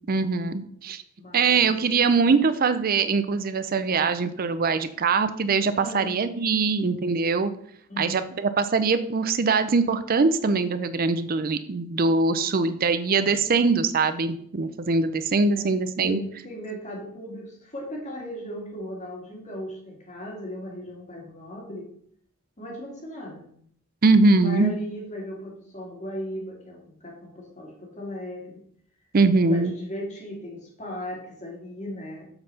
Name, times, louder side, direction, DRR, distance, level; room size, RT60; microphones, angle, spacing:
voice 1, 0.1-1.0 1.3-7.5 8.0-16.2 24.0-24.7 29.1-29.7, right 4 dB, 40° right, 11 dB, 0.5 m, -22 dB
voice 2, 1.2-2.0 2.3-2.4 5.8-6.1 7.9-8.3 13.2-13.4 15.5-21.9 22.6-23.5 24.3-28.6 29.5-32.3, equal, 35° left, -1 dB, 2.2 m, -37 dB
7.7 x 4.5 x 5.5 m, 0.64 s
head